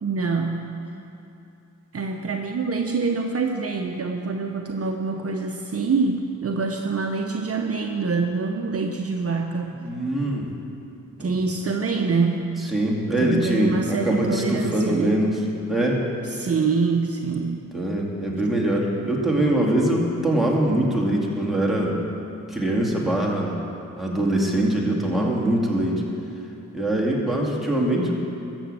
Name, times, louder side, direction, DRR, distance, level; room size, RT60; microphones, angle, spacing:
voice 1, 0.0-0.7 1.9-9.8 11.2-12.5 13.2-15.2 16.2-17.6, right 4 dB, 50° right, 3 dB, 0.8 m, -25 dB
voice 2, 9.8-10.5 11.2-11.4 12.7-15.4 15.7-16.0 17.7-22.0 22.5-23.6 24.0-26.0 26.7-28.1, right 1 dB, ahead, -3 dB, 2.4 m, -23 dB
13.5 x 7.1 x 7.6 m, 2.7 s
cardioid pair, 70°, 32 cm